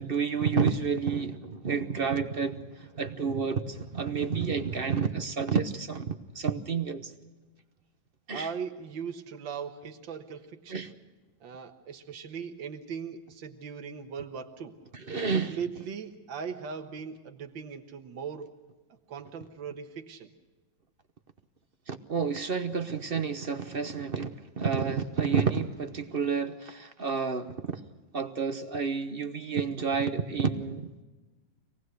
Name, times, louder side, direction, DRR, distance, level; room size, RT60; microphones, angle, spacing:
voice 1, 0.0-7.1 8.3-8.5 10.7-10.9 14.9-15.5 21.9-27.8 28.1-30.9, right 5 dB, 40° right, 9 dB, 0.9 m, -30 dB
voice 2, 8.3-10.9 11.4-14.8 15.3-18.5 19.1-20.3, right 6 dB, 80° right, 5 dB, 2.0 m, -39 dB
26.0 x 19.0 x 6.4 m, 1.2 s
omnidirectional pair, 2.1 m